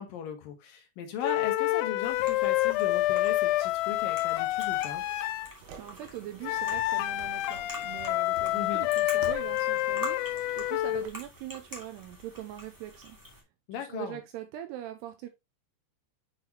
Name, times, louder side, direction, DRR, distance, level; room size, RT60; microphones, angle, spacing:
voice 1, 0.0-5.0 8.5-8.8 13.7-14.2, left 8 dB, 70° left, 2.3 m, -37 dB
sound 1, 1.2-5.5 6.4-11.1, left 16 dB, 85° left, 3.0 m, -28 dB
sound 2, 2.0-13.4, equal, 10° right, 1.2 m, -47 dB
voice 2, 5.5-13.2 13.8-15.3, right 12 dB, 85° right, 2.4 m, -42 dB
sound 3, 5.6-11.1, right 6 dB, 70° right, 2.8 m, -50 dB
8.0 x 5.5 x 2.9 m
omnidirectional pair, 5.4 m